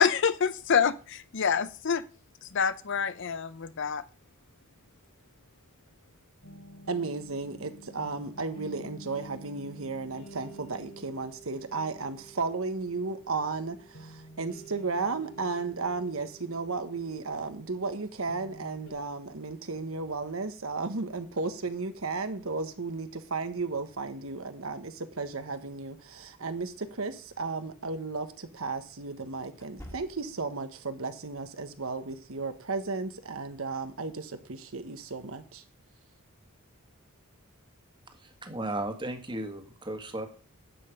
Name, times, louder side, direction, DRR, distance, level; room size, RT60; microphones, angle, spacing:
voice 1, 0.0-2.0 2.5-4.0, left 6 dB, 60° left, 0.6 m, -26 dB
sound 1, 6.4-18.9, right 1 dB, 90° left, 3.6 m, -50 dB
voice 2, 6.9-35.6, right 4 dB, 70° right, 1.2 m, -34 dB
sound 2, 27.3-27.5 29.5-30.6, equal, 15° left, 2.0 m, -48 dB
voice 3, 38.1-40.3, right 1 dB, 20° right, 1.7 m, -35 dB
11.5 x 7.9 x 5.1 m
head